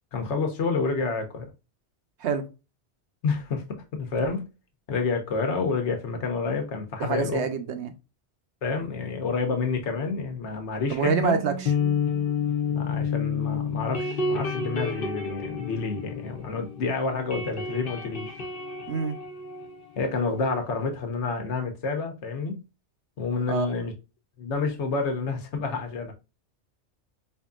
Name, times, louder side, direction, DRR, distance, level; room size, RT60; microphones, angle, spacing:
voice 1, 0.1-1.5 3.2-4.5 4.9-7.4 8.6-11.4 12.7-18.4 20.0-22.6 23.2-23.9 24.4-26.1, left 4 dB, 80° left, 1.2 m, -29 dB
voice 2, 7.0-7.9 10.9-11.7 18.9-19.2 23.5-23.7, right 6 dB, 80° right, 1.0 m, -26 dB
sound 1, 11.0-16.8 17.1-20.5, left 5 dB, 55° left, 1.0 m, -30 dB
4.4 x 2.7 x 2.3 m
omnidirectional pair, 1.2 m